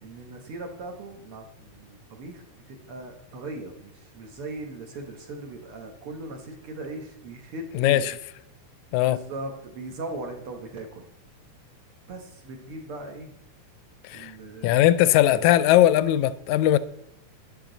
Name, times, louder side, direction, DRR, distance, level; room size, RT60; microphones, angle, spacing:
voice 1, 0.0-8.1 9.1-11.1 12.1-13.3 14.1-15.0, right 2 dB, 55° right, 1.9 m, -39 dB
voice 2, 7.7-8.2 8.9-9.2 14.0-14.3 14.6-16.8, left 13 dB, 80° left, 1.8 m, -19 dB
12.0 x 10.5 x 3.9 m
omnidirectional pair, 3.5 m